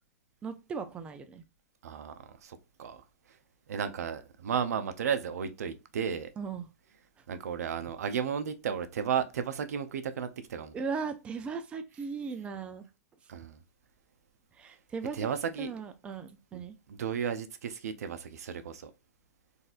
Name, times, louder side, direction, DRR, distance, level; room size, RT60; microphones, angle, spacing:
voice 1, 0.4-1.4 6.4-6.7 10.7-12.9 14.5-15.3 15.6-16.8, right 5 dB, 15° right, 0.4 m, -37 dB
voice 2, 1.8-3.0 3.7-6.3 7.3-10.7 13.3-13.6 15.1-15.7 16.5-18.9, right 7 dB, 80° right, 0.6 m, -34 dB
4.0 x 2.5 x 2.4 m
hypercardioid pair, 145°, 8 cm